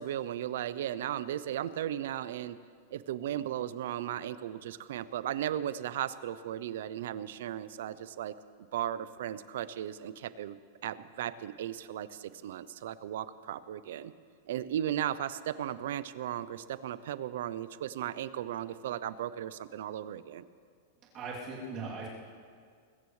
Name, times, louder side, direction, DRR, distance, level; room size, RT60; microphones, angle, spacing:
voice 1, 0.0-2.6 2.9-8.3 8.7-14.1 14.5-20.4, right 11 dB, 60° right, 16 dB, 0.5 m, -36 dB
voice 2, 21.1-22.1, right 3 dB, 25° right, -5 dB, 2.9 m, -39 dB
22.0 x 14.0 x 3.2 m, 2.1 s
supercardioid pair, 175°, 0 cm